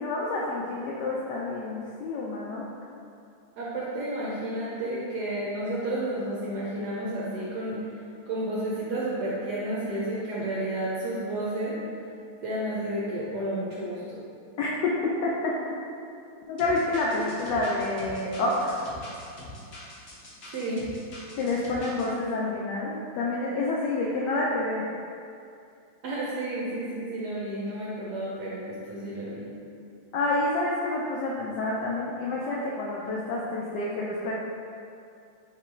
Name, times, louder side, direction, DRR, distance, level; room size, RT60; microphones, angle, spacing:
voice 1, 0.0-2.7 14.6-15.3 16.4-18.8 21.4-24.8 30.1-34.3, left 2 dB, 85° left, -4 dB, 0.9 m, -28 dB
voice 2, 3.6-7.8 8.3-11.8 12.4-14.2 20.5-20.8 26.0-29.5, right 1 dB, 70° right, -7 dB, 1.0 m, -31 dB
sound 1, 16.6-22.1, left 1 dB, 60° left, 0.6 m, -44 dB
3.8 x 2.9 x 4.3 m, 2.5 s
omnidirectional pair, 2.4 m